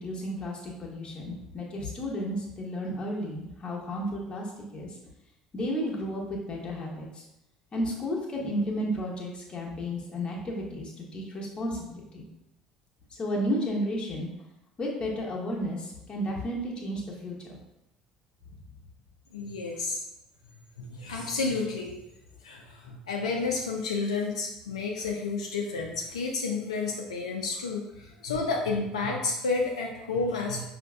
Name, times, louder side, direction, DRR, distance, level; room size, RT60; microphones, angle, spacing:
voice 1, 0.0-4.5 4.7-4.9 5.5-7.2 7.7-12.2 13.1-14.3 14.8-17.6, equal, 35° left, -2 dB, 1.0 m, -32 dB
voice 2, 19.3-20.0 20.8-21.9 22.4-30.6, left 4 dB, 85° left, 0 dB, 0.3 m, -31 dB
5.0 x 2.5 x 2.2 m, 0.89 s
hypercardioid pair, 60°, 3 cm